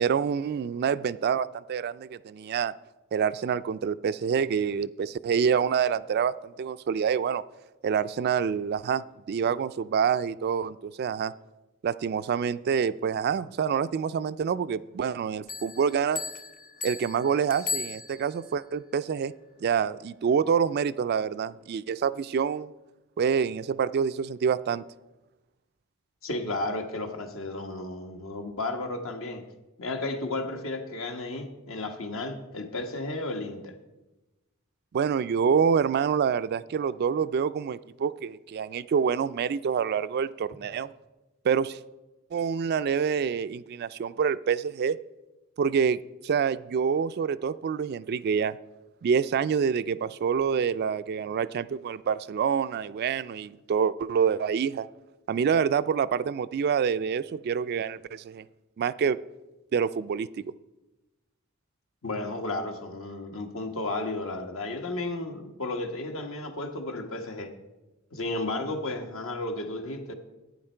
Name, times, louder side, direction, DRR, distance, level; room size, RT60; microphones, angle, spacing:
voice 1, 0.0-2.7 3.1-7.4 7.8-11.3 11.8-16.2 16.8-19.3 19.6-22.7 23.2-24.8 34.9-40.9 41.4-41.8 42.3-45.0 45.6-46.0 46.2-48.6 49.0-54.9 55.3-58.4 58.8-59.2 59.7-60.3, right 7 dB, 50° right, 15 dB, 0.3 m, -27 dB
sound 1, 15.5-18.5, left 5 dB, 40° left, 0.6 m, -36 dB
voice 2, 26.2-29.4 29.8-33.7 62.0-67.5 68.1-70.1, left 2 dB, 70° left, 5 dB, 1.3 m, -33 dB
11.0 x 9.3 x 4.4 m, 1.0 s
head